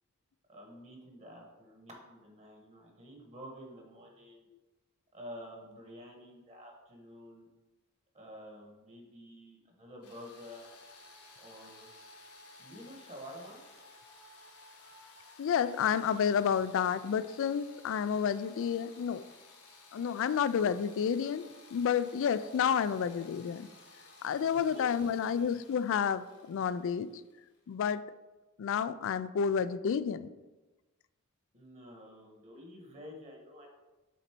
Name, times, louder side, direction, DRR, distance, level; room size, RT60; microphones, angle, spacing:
voice 1, 0.5-4.5 5.1-7.5 8.1-10.7 11.4-11.9 12.6-13.6 24.4-25.2 31.5-33.7, equal, 30° right, 1 dB, 1.3 m, -49 dB
sound 1, 10.0-27.7, left 3 dB, 80° left, 1.4 m, -56 dB
voice 2, 15.4-19.2 19.9-23.7 24.2-27.1 27.7-28.0 28.6-30.3, left 7 dB, 60° left, 15 dB, 0.3 m, -30 dB
7.1 x 4.0 x 4.5 m, 1.1 s
head